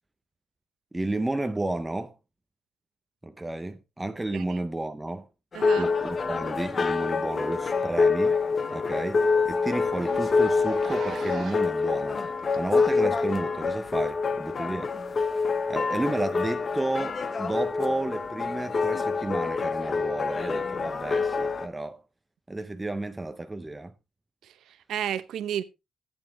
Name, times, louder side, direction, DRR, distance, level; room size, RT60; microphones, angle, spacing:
voice 1, 0.9-2.1 3.2-5.3 5.8-8.4 8.7-12.2 12.6-14.9 15.7-22.0 22.5-23.9, right 2 dB, 10° right, 0.5 m, -32 dB
sound 1, 5.5-21.7, left 4 dB, 30° left, 0.7 m, -26 dB
voice 2, 5.5-5.9 24.4-25.6, right 10 dB, 75° right, 0.8 m, -32 dB
Zipper (clothing), 7.3-7.4 7.7-7.8 8.2-8.3 8.7-8.8 9.0-9.2 9.8-11.8 12.5-12.6 13.7-13.8, right 6 dB, 50° right, 1.4 m, -42 dB
14.0 x 8.9 x 3.0 m
cardioid pair, 170°, 0 cm